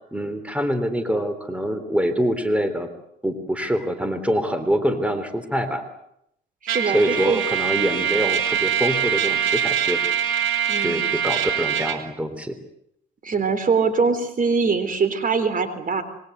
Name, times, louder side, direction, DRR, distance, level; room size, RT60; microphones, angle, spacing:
voice 1, 0.1-2.9 3.2-5.8 6.9-10.0 10.8-12.6, equal, 5° right, 9 dB, 3.5 m, -25 dB
voice 2, 6.6-7.4 10.7-11.1 13.2-16.0, right 5 dB, 45° right, 11 dB, 3.6 m, -23 dB
Trumpet, 6.7-12.0, right 9 dB, 80° right, 3.3 m, -23 dB
26.5 x 22.5 x 8.1 m, 0.76 s
cardioid pair, 90°, 20 cm